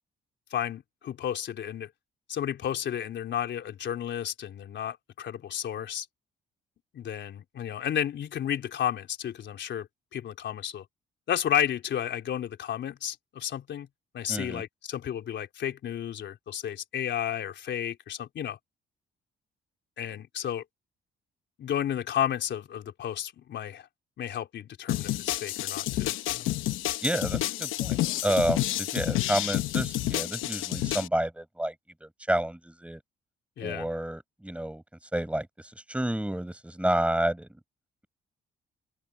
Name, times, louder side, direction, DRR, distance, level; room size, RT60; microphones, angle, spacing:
voice 1, 0.5-1.9 2.3-6.1 6.9-10.8 11.3-13.9 14.1-18.6 20.0-20.6 21.6-23.9 24.2-26.5 33.6-33.9, left 10 dB, 65° left, 3.7 m, -32 dB
voice 2, 14.3-14.6 27.0-31.7 32.0-33.0 33.6-34.8 35.1-37.6, right 1 dB, 5° right, 5.3 m, -30 dB
sound 1, 24.9-31.1, left 15 dB, 90° left, 0.9 m, -29 dB
open air
cardioid pair, 90°, 20 cm